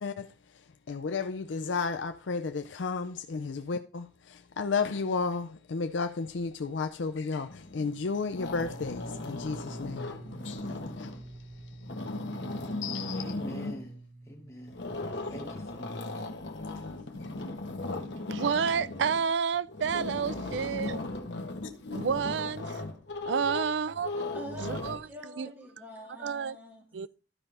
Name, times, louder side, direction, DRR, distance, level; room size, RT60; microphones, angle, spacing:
voice 1, 0.0-13.2 15.2-15.3 16.7-17.3, left 4 dB, 90° left, 0.5 m, -34 dB
sound 1, 7.5-7.9 8.2-11.3 11.7-13.9 14.7-25.0, left 2 dB, 70° left, 1.3 m, -37 dB
sound 2, 8.5-16.2, right 2 dB, 45° right, 1.3 m, -47 dB
voice 2, 13.1-14.8 15.3-16.3, equal, 15° left, 2.3 m, -45 dB
voice 3, 18.3-21.0 21.9-22.8 23.3-24.2 24.6-25.5 26.2-26.6 26.9-27.1, right 6 dB, 75° right, 0.4 m, -30 dB
voice 4, 24.3-27.1, equal, 10° right, 3.2 m, -45 dB
13.0 x 5.5 x 3.4 m
head